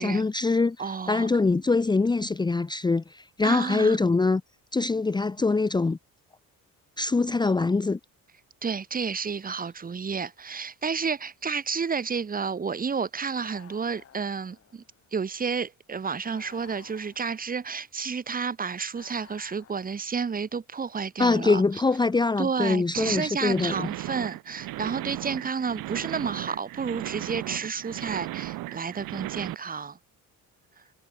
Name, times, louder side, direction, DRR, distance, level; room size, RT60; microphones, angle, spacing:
voice 1, 0.0-0.8 1.1-4.4 4.7-6.0 7.0-8.0 21.2-23.9, left 3 dB, 15° left, 1.0 m, -24 dB
voice 2, 0.8-1.3 3.4-4.1 8.6-14.8 15.1-21.8 22.4-30.0, right 5 dB, 25° right, 2.4 m, -31 dB
sound 1, 13.3-15.1 16.2-17.8 18.9-20.3 21.6-22.7, left 8 dB, 45° left, 7.1 m, -54 dB
sound 2, 23.0-29.5, right 17 dB, 80° right, 1.0 m, -36 dB
cardioid pair, 160°, 33 cm